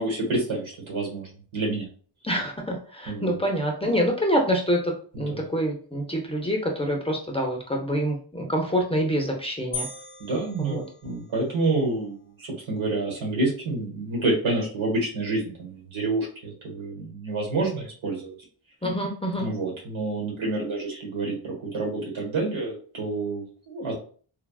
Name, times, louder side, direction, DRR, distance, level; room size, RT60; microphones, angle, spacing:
voice 1, 0.0-1.9 3.1-3.4 5.1-5.3 10.2-12.2 12.7-18.3 19.4-23.9, right 2 dB, 90° right, -2 dB, 1.4 m, -28 dB
voice 2, 2.2-9.9 10.6-10.8 18.8-19.5, equal, 15° left, 0 dB, 0.4 m, -26 dB
sound 1, 9.7-11.5, left 3 dB, 20° right, 1.1 m, -38 dB
3.3 x 2.3 x 2.3 m, 0.43 s
wide cardioid pair, 125°, 46 cm